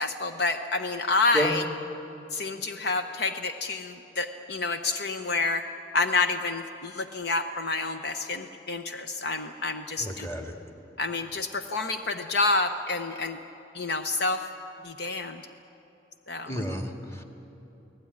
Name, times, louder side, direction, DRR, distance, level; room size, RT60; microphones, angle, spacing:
voice 1, 0.0-1.6 2.3-10.3 11.0-13.4 13.7-14.5 14.8-15.4 16.3-16.5, left 3 dB, 60° left, 7 dB, 0.9 m, -28 dB
voice 2, 10.0-10.6 16.5-17.2, equal, 15° left, 3 dB, 2.0 m, -31 dB
29.5 x 18.5 x 9.8 m, 3.0 s
head